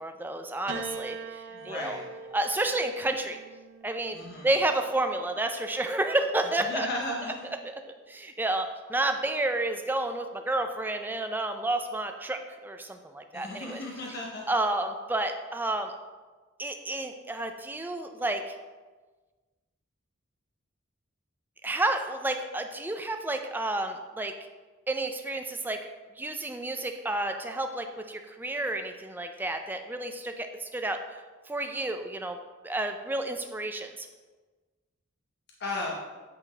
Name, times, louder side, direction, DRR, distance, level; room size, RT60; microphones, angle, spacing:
voice 1, 0.0-2.0 2.3-3.4 3.8-4.2 4.4-6.9 7.6-13.8 14.1-14.2 14.5-15.9 16.6-18.5 21.6-24.3 24.9-25.8 26.2-31.2 31.5-32.4 32.6-34.1, right 2 dB, 10° right, 6 dB, 0.4 m, -30 dB
Piano, 0.7-5.2 6.2-6.9, right 4 dB, 65° right, 0.5 m, -43 dB
voice 2, 1.5-2.1 4.1-4.5 6.7-7.5 13.3-14.4 35.6-36.0, left 2 dB, 55° left, -3 dB, 0.8 m, -35 dB
8.5 x 3.9 x 3.3 m, 1.3 s
head